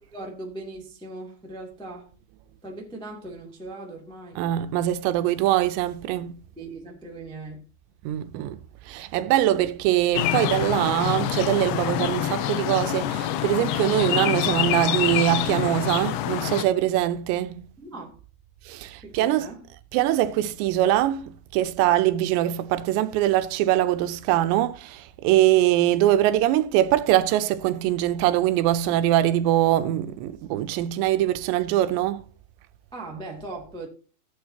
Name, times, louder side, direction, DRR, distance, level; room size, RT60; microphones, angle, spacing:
voice 1, 0.0-2.1 2.6-4.4 6.5-7.6 17.8-18.2 19.0-19.6 32.9-33.9, right 2 dB, 5° left, 0.7 m, -39 dB
voice 2, 4.4-6.3 8.1-8.6 8.9-17.7 18.7-19.5 19.9-32.3, right 13 dB, 80° right, 2.9 m, -23 dB
sound 1, 10.1-16.6, left 12 dB, 90° left, 3.1 m, -26 dB
15.5 x 8.9 x 2.9 m
omnidirectional pair, 5.2 m